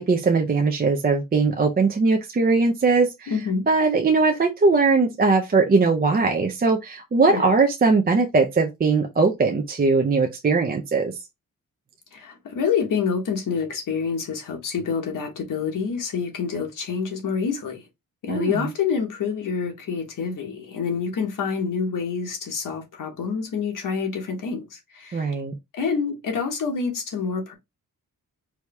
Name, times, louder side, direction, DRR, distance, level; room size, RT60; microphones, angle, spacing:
voice 1, 0.0-3.3 3.7-11.1 18.3-18.7 25.1-25.5, right 4 dB, 30° right, 0.5 m, -20 dB
voice 2, 3.3-3.6 7.3-7.5 12.1-17.8 18.2-25.3 25.7-27.5, left 6 dB, 70° left, 1.4 m, -27 dB
4.7 x 2.8 x 3.3 m
wide cardioid pair, 165°, 33 cm